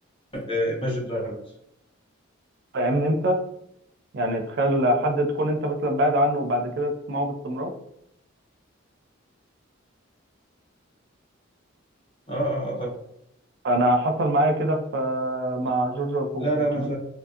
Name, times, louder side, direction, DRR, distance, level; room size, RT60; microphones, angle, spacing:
voice 1, 0.3-1.4 12.3-12.9 16.4-17.0, right 1 dB, 25° left, -3 dB, 0.8 m, -26 dB
voice 2, 2.7-3.4 4.1-7.7 13.6-16.4 16.7-16.9, right 1 dB, 55° right, 5 dB, 0.4 m, -24 dB
2.7 x 2.6 x 2.4 m, 0.78 s
head